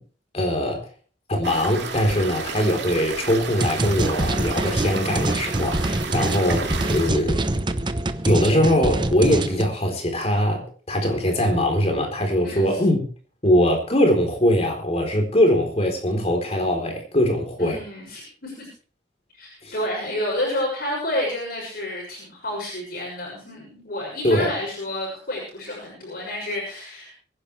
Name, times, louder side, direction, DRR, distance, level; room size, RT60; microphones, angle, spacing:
voice 1, 0.3-0.9 1.3-7.6 8.2-13.0 13.4-17.8 19.6-19.7 24.2-24.5, equal, 35° left, 3 dB, 4.0 m, -22 dB
sound 1, 1.4-7.1, right 4 dB, 75° right, 2.2 m, -32 dB
sound 2, 3.6-9.6, right 1 dB, 25° right, 0.8 m, -25 dB
voice 2, 12.4-12.8 17.6-18.7 19.3-27.1, left 1 dB, 55° left, -2 dB, 6.4 m, -30 dB
24.0 x 10.5 x 3.4 m, 0.41 s
head